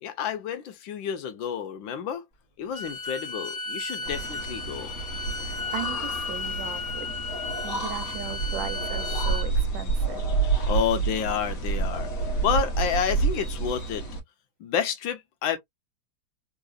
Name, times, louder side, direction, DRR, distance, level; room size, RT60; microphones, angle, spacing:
voice 1, 0.0-2.2 2.6-5.0 10.7-12.1 12.4-14.0 14.6-15.6, left 8 dB, 85° left, 1.5 m, -29 dB
Bowed string instrument, 2.7-9.5, left 3 dB, 20° left, 1.3 m, -34 dB
sound 1, 4.0-14.2, right 4 dB, 50° left, 1.6 m, -29 dB
voice 2, 5.3-7.1 7.6-10.3, right 10 dB, 85° right, 1.5 m, -37 dB
3.8 x 2.8 x 2.4 m
omnidirectional pair, 2.1 m